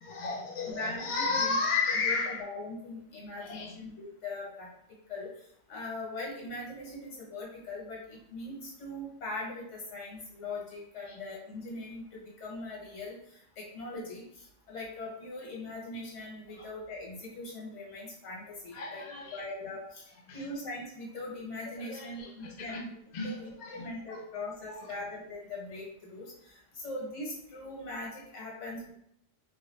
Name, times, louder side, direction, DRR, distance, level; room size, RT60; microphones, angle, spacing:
voice 1, 0.0-2.5 3.4-3.7 11.1-11.2 16.6-16.7 18.7-19.4 20.3-20.4 21.7-22.8 23.1-24.2 24.7-24.8, left 4 dB, 45° left, 0 dB, 0.7 m, -33 dB
voice 2, 0.7-1.5 1.9-4.7 5.1-5.3 5.7-13.2 13.6-19.0 19.3-20.0 20.3-23.0 23.2-28.9, left 2 dB, 80° left, -3 dB, 1.4 m, -41 dB
3.8 x 2.3 x 3.1 m, 0.73 s
omnidirectional pair, 1.2 m